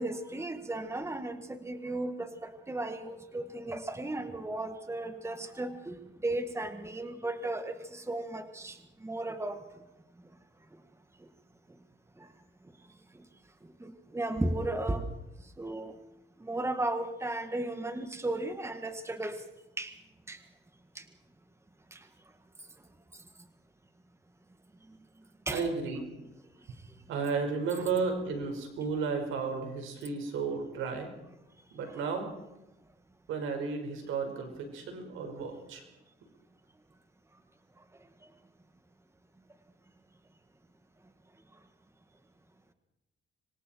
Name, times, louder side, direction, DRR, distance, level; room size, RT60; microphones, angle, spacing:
voice 1, 0.0-5.9 6.2-8.7 9.0-9.6 13.8-15.0 15.6-15.9 16.5-19.4 19.8-19.9 20.3-20.4 25.5-25.6, right 2 dB, 15° right, 8 dB, 1.9 m, -35 dB
voice 2, 25.5-26.0 27.1-31.1 31.7-32.3 33.3-35.8, right 5 dB, 85° right, 4 dB, 5.3 m, -33 dB
26.0 x 24.0 x 4.6 m, 0.91 s
cardioid pair, 90°, 20 cm